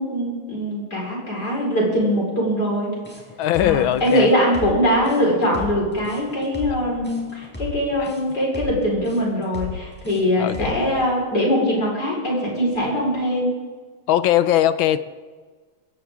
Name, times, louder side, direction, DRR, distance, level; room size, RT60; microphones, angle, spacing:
voice 1, 0.0-2.9 3.6-13.5, equal, 50° left, -3 dB, 5.3 m, -22 dB
sound 1, 3.0-10.9, left 5 dB, 5° left, 4.2 m, -35 dB
voice 2, 3.4-4.3 8.0-8.1 10.4-10.8 14.1-15.0, left 12 dB, 75° left, 13 dB, 1.4 m, -20 dB
21.0 x 16.5 x 3.7 m, 1.4 s
omnidirectional pair, 2.3 m